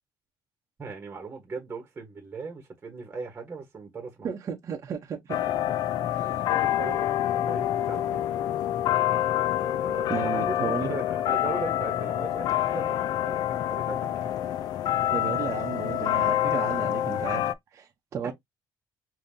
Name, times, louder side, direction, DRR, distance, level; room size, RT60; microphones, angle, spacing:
voice 1, 0.8-4.3 6.5-7.1 7.4-8.2 9.1-9.3 9.6-13.4 13.7-14.3, right 4 dB, 20° right, 1.2 m, -39 dB
voice 2, 4.2-5.4 6.1-6.4 9.8-10.9 15.1-17.4 17.7-18.3, right 7 dB, 40° right, 0.7 m, -34 dB
sound 1, 5.3-17.5, left 12 dB, 60° left, 0.4 m, -27 dB
5.1 x 2.8 x 2.7 m
cardioid pair, 165°, 8 cm